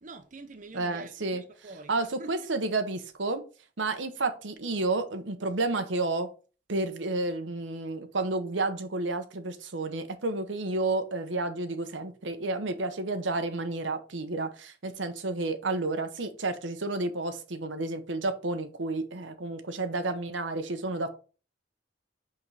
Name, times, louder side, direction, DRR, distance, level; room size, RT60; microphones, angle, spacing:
voice 1, 0.0-1.9 2.2-2.3, right 2 dB, 45° right, 0.8 m, -45 dB
voice 2, 0.7-1.4 1.9-3.4 3.8-6.3 6.7-21.1, right 2 dB, 80° right, 1.0 m, -31 dB
5.8 x 5.5 x 4.8 m
head